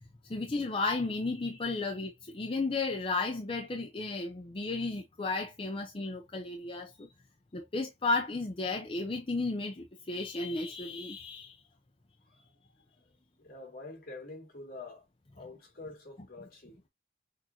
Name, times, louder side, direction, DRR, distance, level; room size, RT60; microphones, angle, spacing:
voice 1, 0.2-7.1 7.5-11.6, left 3 dB, 30° left, 0.6 m, -33 dB
voice 2, 12.3-12.6 13.0-15.1 15.3-16.8, left 2 dB, 55° left, 2.5 m, -47 dB
6.5 x 2.6 x 2.9 m
head